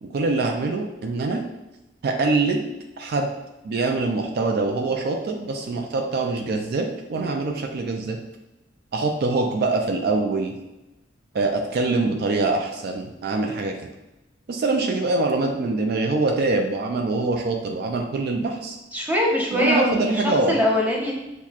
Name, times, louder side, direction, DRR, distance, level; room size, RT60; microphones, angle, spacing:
voice 1, 0.0-1.4 2.0-2.7 3.0-3.3 3.6-8.2 8.9-10.5 11.3-13.8 14.5-18.8 19.5-20.6, right 3 dB, 55° right, 4 dB, 0.3 m, -24 dB
voice 2, 18.9-21.1, equal, 10° right, -2 dB, 0.6 m, -22 dB
5.8 x 2.1 x 2.4 m, 1.0 s
head